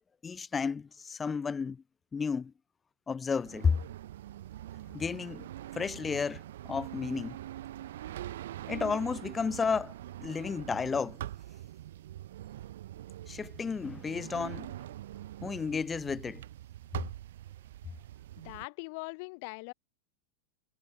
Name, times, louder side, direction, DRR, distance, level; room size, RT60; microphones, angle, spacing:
voice 1, 0.2-1.8 2.1-2.5 3.1-3.8 4.9-5.5 5.7-7.4 8.7-9.9 10.2-11.2 13.3-14.7 15.4-16.4, left 5 dB, 15° left, 0.5 m, -32 dB
sound 1, 3.3-18.7, right 13 dB, 60° right, 1.2 m, -43 dB
voice 2, 18.4-19.7, left 31 dB, 45° left, 3.6 m, -41 dB
figure-of-eight pair, 90°, 0 cm